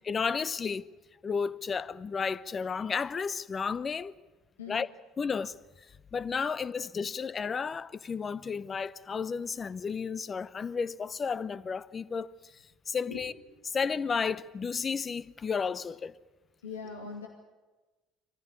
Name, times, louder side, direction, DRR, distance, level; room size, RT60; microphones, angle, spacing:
voice 1, 0.0-0.9 1.2-4.1 4.7-4.9 5.2-5.5 6.1-12.3 12.9-13.3 13.7-16.2, left 5 dB, 35° left, 0.8 m, -32 dB
voice 2, 16.6-17.3, left 5 dB, 80° left, 2.2 m, -41 dB
23.5 x 15.0 x 9.7 m
figure-of-eight pair, 60°, 0 cm